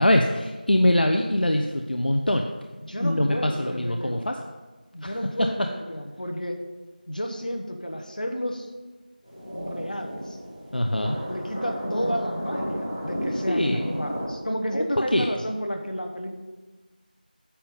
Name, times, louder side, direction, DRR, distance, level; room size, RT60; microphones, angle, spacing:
voice 1, 0.0-2.5 3.0-4.4 5.0-5.1 10.7-11.2 13.5-13.9 14.7-14.9 15.1-15.3, left 1 dB, 75° left, 4 dB, 0.6 m, -23 dB
voice 2, 2.8-4.3 4.9-6.6 7.1-8.7 9.4-10.4 11.3-16.4, equal, 60° left, 3 dB, 1.1 m, -32 dB
sound 1, 9.2-14.3, equal, 25° left, 2.5 m, -32 dB
8.6 x 7.0 x 3.7 m, 1.2 s
figure-of-eight pair, 180°, 5 cm